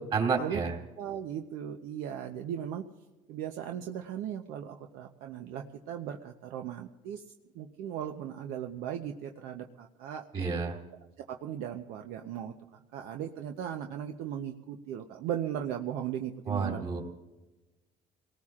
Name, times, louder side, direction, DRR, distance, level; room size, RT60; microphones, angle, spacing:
voice 1, 0.1-0.7 10.3-10.8 16.5-17.0, right 5 dB, 40° right, 1 dB, 2.9 m, -29 dB
voice 2, 1.0-2.8 3.3-7.2 7.5-10.2 11.2-16.8, right 9 dB, 80° right, 3 dB, 0.8 m, -37 dB
29.5 x 18.5 x 2.5 m, 1.1 s
cardioid pair, 120°, 15 cm